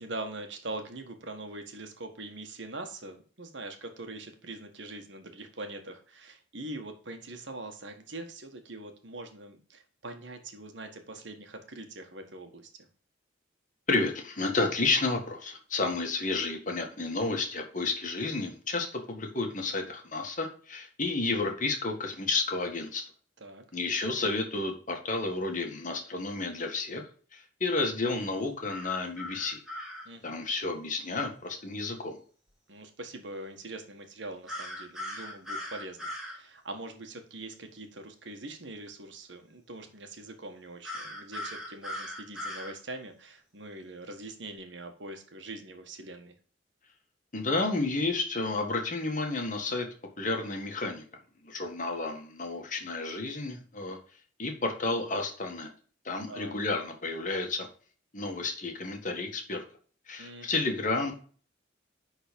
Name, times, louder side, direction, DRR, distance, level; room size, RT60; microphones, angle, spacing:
voice 1, 0.0-12.7 23.4-23.6 30.0-30.4 32.7-46.3 56.3-56.6 60.2-60.5, right 2 dB, 70° right, 5 dB, 1.6 m, -43 dB
voice 2, 13.9-23.0 23.7-27.0 27.3-29.6 30.2-32.2 47.3-49.9 50.2-51.0 51.4-54.0 54.4-55.7 56.1-57.7 58.1-59.6 60.1-61.1, left 3 dB, 45° left, 3 dB, 1.8 m, -31 dB
sound 1, 28.7-30.1 34.5-36.4 40.8-42.7, left 1 dB, 5° right, 2.6 m, -39 dB
10.5 x 4.1 x 5.2 m, 0.43 s
head